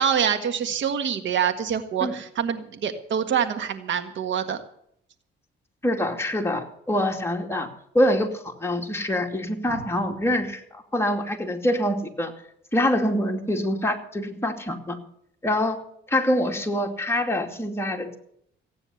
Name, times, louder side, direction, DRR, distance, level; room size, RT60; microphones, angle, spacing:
voice 1, 0.0-4.6, right 8 dB, 70° right, 9 dB, 1.7 m, -25 dB
voice 2, 5.8-7.7 7.9-12.3 12.7-15.0 15.4-15.8 16.1-18.2, left 1 dB, 10° left, 2 dB, 2.6 m, -25 dB
16.0 x 9.6 x 7.1 m, 0.70 s
cardioid pair, 90°, 20 cm